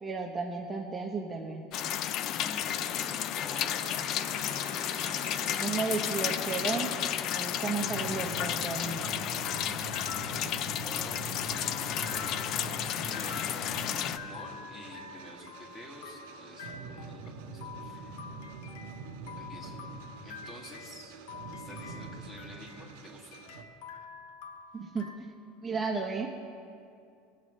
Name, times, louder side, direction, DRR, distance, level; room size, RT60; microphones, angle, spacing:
voice 1, 0.0-1.7 5.5-6.9 7.3-9.1 24.7-25.3 25.6-26.3, right 4 dB, 15° right, 0 dB, 0.7 m, -33 dB
sound 1, 1.7-14.2, left 10 dB, 45° left, 0.3 m, -32 dB
voice 2, 1.9-4.2 10.8-12.6 13.0-17.5 17.8-18.3 19.4-19.8 20.2-21.2 21.5-23.4, equal, 25° left, -2 dB, 2.0 m, -49 dB
sound 2, 3.7-7.4 7.8-23.6, right 4 dB, 90° right, 0.9 m, -45 dB
sound 3, 9.4-25.2, left 6 dB, 75° left, 0.8 m, -47 dB
20.5 x 7.5 x 3.2 m, 2.5 s
cardioid pair, 155°, 0 cm